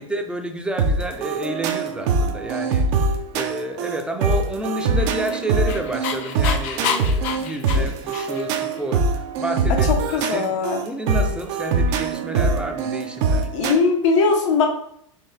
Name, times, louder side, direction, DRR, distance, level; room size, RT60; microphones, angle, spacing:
voice 1, 0.0-2.9 3.3-10.6 10.8-13.5, right 1 dB, 5° right, 4 dB, 0.6 m, -30 dB
sound 1, 0.8-13.7, right 3 dB, 55° right, 0.7 m, -23 dB
Dog, 4.8-8.6, left 7 dB, 45° left, 0.6 m, -29 dB
voice 2, 9.7-10.8 13.5-14.7, left 4 dB, 65° left, 2 dB, 1.1 m, -20 dB
4.5 x 3.1 x 3.4 m, 0.70 s
hypercardioid pair, 105°, 17 cm